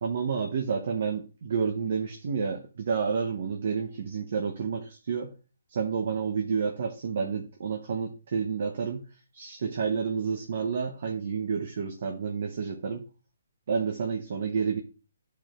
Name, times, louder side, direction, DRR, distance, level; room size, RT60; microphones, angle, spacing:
voice 1, 0.0-5.3 5.7-13.0 13.7-14.8, right 6 dB, 55° right, 3 dB, 0.8 m, -30 dB
13.0 x 4.6 x 2.5 m, 0.34 s
figure-of-eight pair, 140°, 0 cm